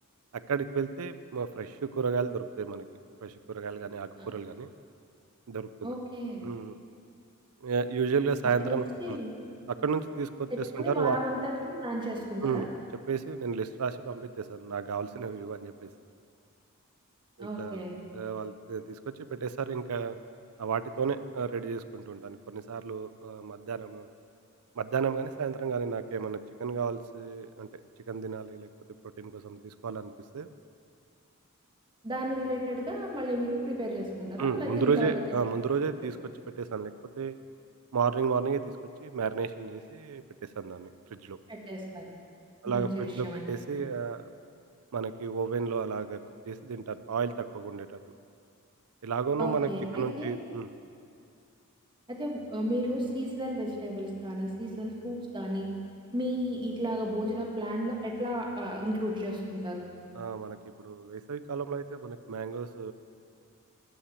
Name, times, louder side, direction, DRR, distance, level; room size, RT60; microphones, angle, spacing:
voice 1, 0.5-2.9 3.2-4.7 5.5-6.0 6.4-6.8 7.6-9.2 9.7-11.2 12.4-12.7 13.1-15.9 17.4-17.9 18.1-20.1 20.6-24.1 24.8-27.7 28.1-28.7 29.2-30.5 34.4-36.2 36.6-37.4 37.9-38.6 39.0-40.2 40.6-41.4 42.6-44.2 44.9-48.0 49.0-50.7 60.1-62.9, right 5 dB, 75° right, 12 dB, 0.5 m, -32 dB
voice 2, 5.8-6.4 8.6-9.3 10.5-12.7 17.4-18.0 32.0-35.2 41.5-42.1 42.6-43.5 49.4-50.3 52.1-55.7 56.1-59.9, equal, 20° right, -1 dB, 1.6 m, -33 dB
13.0 x 5.8 x 8.2 m, 2.4 s
head